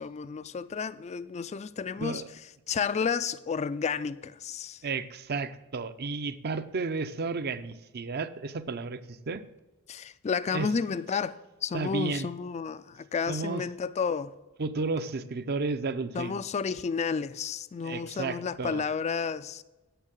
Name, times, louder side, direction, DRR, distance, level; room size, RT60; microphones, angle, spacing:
voice 1, 0.0-2.4 2.7-4.8 9.9-14.3 16.1-19.6, left 5 dB, 30° left, 0.3 m, -31 dB
voice 2, 4.8-9.4 10.5-10.7 11.7-12.3 13.3-13.6 14.6-16.4 17.8-18.8, right 4 dB, 50° right, 0.6 m, -32 dB
10.0 x 6.4 x 7.5 m
head